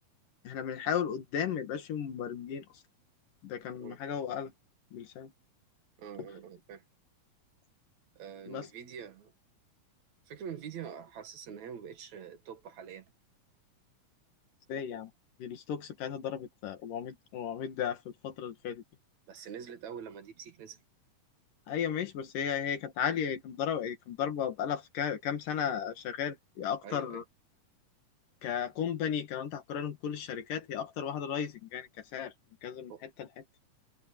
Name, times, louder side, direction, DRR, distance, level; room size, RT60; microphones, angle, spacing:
voice 1, 0.5-2.8 3.4-4.5 4.9-5.3 6.2-6.3 8.5-8.7 14.7-15.1 15.4-18.8 21.7-27.2 28.4-32.3 32.6-33.4, left 8 dB, 90° left, 3.5 m, -35 dB
voice 2, 6.0-6.8 8.1-9.3 10.3-13.1 19.3-20.8 26.8-27.2 32.9-33.1, right 8 dB, 65° right, 2.9 m, -45 dB
omnidirectional pair, 3.7 m